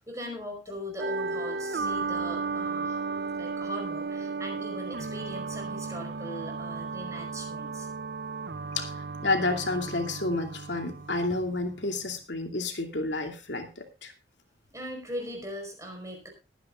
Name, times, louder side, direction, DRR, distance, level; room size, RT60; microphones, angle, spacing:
voice 1, 0.0-3.0 3.4-7.9 14.7-16.3, equal, 15° right, 2 dB, 5.0 m, -40 dB
sound 1, 1.0-12.0, right 4 dB, 55° right, 0.6 m, -34 dB
voice 2, 9.2-14.1, left 2 dB, 75° left, 4 dB, 2.5 m, -30 dB
21.0 x 10.0 x 2.5 m, 0.28 s
head